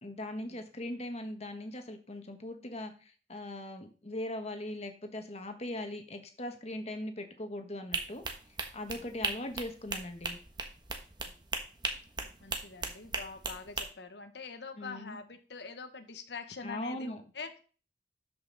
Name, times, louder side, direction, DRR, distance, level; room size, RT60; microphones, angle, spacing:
voice 1, 0.0-8.2 8.7-10.4 14.8-15.2 16.6-17.2, left 1 dB, 35° left, 6 dB, 1.4 m, -40 dB
sound 1, 7.9-13.9, right 3 dB, 25° right, 1.2 m, -37 dB
voice 2, 12.4-17.6, left 4 dB, 70° left, 8 dB, 1.1 m, -44 dB
12.5 x 5.6 x 4.0 m, 0.38 s
head